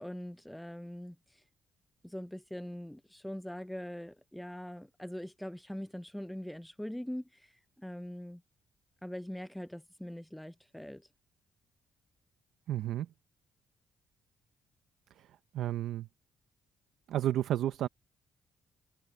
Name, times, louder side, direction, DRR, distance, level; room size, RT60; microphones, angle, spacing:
voice 1, 0.0-1.4 2.0-8.4 9.0-11.1, equal, 5° left, 0.4 m, -42 dB
voice 2, 12.7-13.1 15.2-15.3 15.5-16.1 17.1-17.9, right 12 dB, 80° right, 0.6 m, -31 dB
cardioid pair, 90°, 0 cm